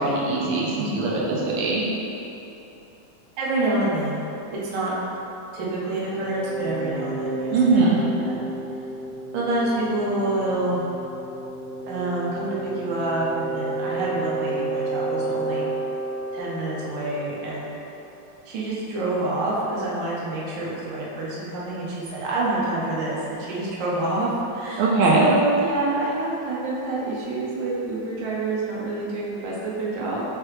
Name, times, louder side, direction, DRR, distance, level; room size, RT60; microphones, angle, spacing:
voice 1, 0.0-1.8 7.5-8.0 24.8-25.2, right 3 dB, 85° right, -5 dB, 1.5 m, -21 dB
voice 2, 3.4-4.2 4.5-5.0 5.5-7.9 8.2-8.4 9.3-10.8 11.9-15.7 16.3-17.7 18.5-30.2, right 2 dB, 65° right, -6 dB, 1.4 m, -27 dB
sound 1, 6.0-17.6, right 2 dB, 35° right, 1.8 m, -31 dB
4.6 x 3.3 x 3.1 m, 3.0 s
omnidirectional pair, 2.3 m